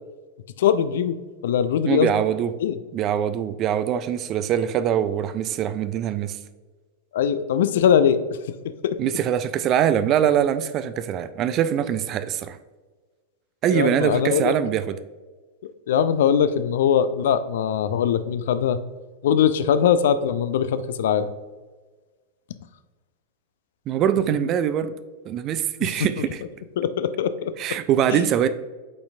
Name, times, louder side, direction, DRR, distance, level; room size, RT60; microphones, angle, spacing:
voice 1, 0.6-1.2 1.4-2.1 2.6-2.8 7.1-8.2 8.6-9.0 13.7-14.5 15.9-18.8 19.2-21.3 26.2-26.3 26.8-27.8 28.1-28.2, left 8 dB, 60° left, 12 dB, 0.3 m, -21 dB
voice 2, 1.9-2.5 2.9-6.4 9.0-12.6 13.6-14.9 23.9-25.0 25.3-26.4 27.6-28.5, right 9 dB, 35° right, 12 dB, 0.4 m, -23 dB
8.5 x 4.3 x 2.6 m, 1.3 s
figure-of-eight pair, 90°, 0 cm